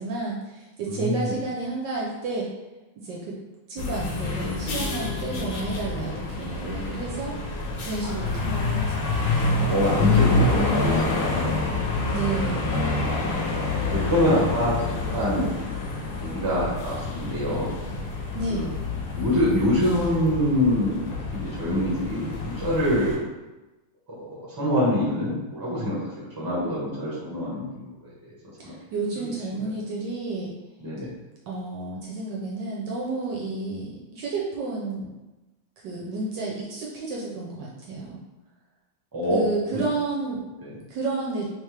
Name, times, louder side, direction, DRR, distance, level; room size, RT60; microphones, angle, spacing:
voice 1, 0.0-2.5 3.0-3.3 3.7-7.5 7.8-9.2 12.1-13.0 18.3-18.7 28.6-30.5 31.5-35.1 35.8-38.2 39.3-40.4 40.9-41.5, right 3 dB, 70° right, -4 dB, 1.2 m, -31 dB
voice 2, 0.9-1.4 8.0-8.1 9.6-11.6 13.0-13.2 13.6-15.5 16.2-17.7 18.5-18.6 19.1-21.0 21.3-23.2 24.1-27.9 28.3-28.4 28.6-28.7 29.1-29.3 30.8-31.1 39.1-39.4 39.7-39.8 40.6-40.7, equal, 15° right, -7 dB, 0.8 m, -25 dB
sound 1, 3.8-23.2, left 3 dB, 70° left, 1.4 m, -27 dB
3.4 x 3.3 x 3.2 m, 1.1 s
omnidirectional pair, 2.2 m